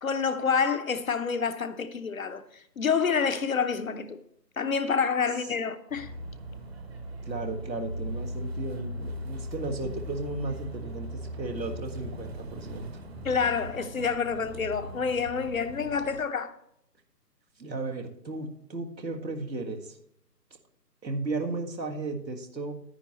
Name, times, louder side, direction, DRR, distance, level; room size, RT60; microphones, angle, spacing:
voice 1, 0.0-4.2 4.6-6.1 13.2-16.5, left 6 dB, 55° left, 0.8 m, -28 dB
sound 1, 5.9-16.2, equal, 40° right, 1.0 m, -39 dB
voice 2, 7.2-13.0 17.6-20.0 21.0-22.7, right 3 dB, 90° right, 1.7 m, -35 dB
9.8 x 9.7 x 3.0 m
figure-of-eight pair, 150°, 50 cm